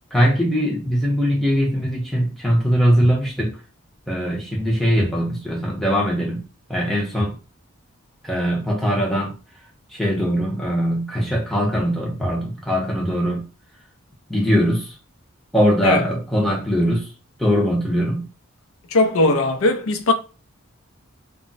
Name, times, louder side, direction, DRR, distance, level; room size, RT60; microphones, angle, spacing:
voice 1, 0.1-3.6 4.1-6.4 6.7-7.4 8.2-9.4 9.9-13.5 14.3-14.9 15.5-17.1 17.4-18.3, equal, ahead, 0.6 m, -21 dB
voice 2, 18.9-20.1, left 2 dB, 75° left, 0.5 m, -18 dB
2.3 x 2.0 x 3.8 m
head